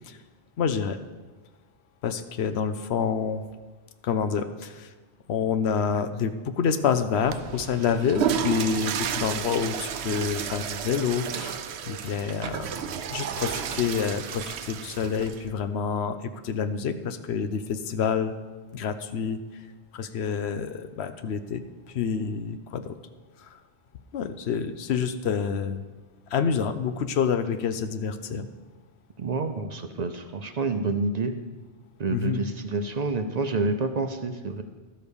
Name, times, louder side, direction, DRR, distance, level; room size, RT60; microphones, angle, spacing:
voice 1, 0.6-1.0 2.0-3.4 4.0-4.9 5.3-11.6 11.9-12.8 13.1-18.3 18.7-19.4 19.9-21.6 21.9-22.9 23.4-23.6 24.1-25.8 26.3-28.5 32.1-32.4, left 6 dB, 85° left, 10 dB, 0.9 m, -28 dB
Water / Toilet flush, 7.2-15.5, right 8 dB, 85° right, 0.9 m, -32 dB
voice 2, 29.2-31.4 32.0-34.6, right 3 dB, 50° right, 7 dB, 0.6 m, -28 dB
12.5 x 6.4 x 5.2 m, 1.3 s
omnidirectional pair, 1.1 m